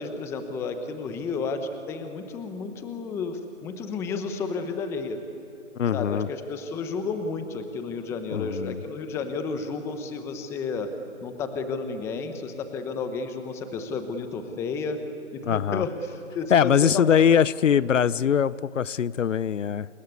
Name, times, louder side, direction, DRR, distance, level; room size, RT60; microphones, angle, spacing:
voice 1, 0.0-5.2 5.9-10.9 11.2-15.0 15.3-17.1, left 4 dB, 5° left, 8 dB, 0.9 m, -32 dB
voice 2, 5.8-6.3 8.3-8.8 15.5-15.8 16.5-19.9, left 8 dB, 70° left, 19 dB, 0.8 m, -22 dB
27.5 x 21.5 x 9.6 m, 2.7 s
hypercardioid pair, 150°, 39 cm